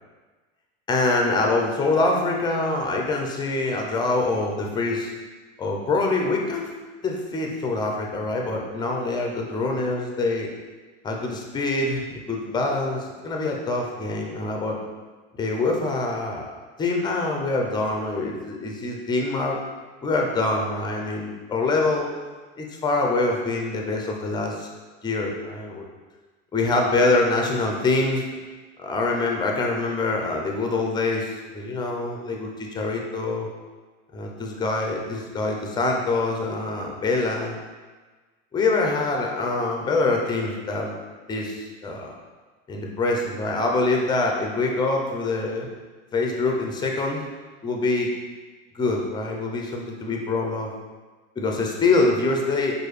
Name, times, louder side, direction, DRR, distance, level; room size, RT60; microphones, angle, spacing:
voice 1, 0.9-5.1 5.6-6.7 7.0-10.5 11.0-14.8 15.4-16.5 16.8-19.6 20.0-22.1 22.6-24.7 25.0-25.9 26.5-28.2 28.8-33.5 34.1-37.5 38.5-41.0 41.3-42.2 42.7-45.7 46.1-47.3 47.6-48.1 48.7-50.7 51.4-52.7, left 3 dB, 10° left, 0 dB, 0.4 m, -25 dB
4.6 x 2.3 x 3.1 m, 1.3 s
hypercardioid pair, 105°, 41 cm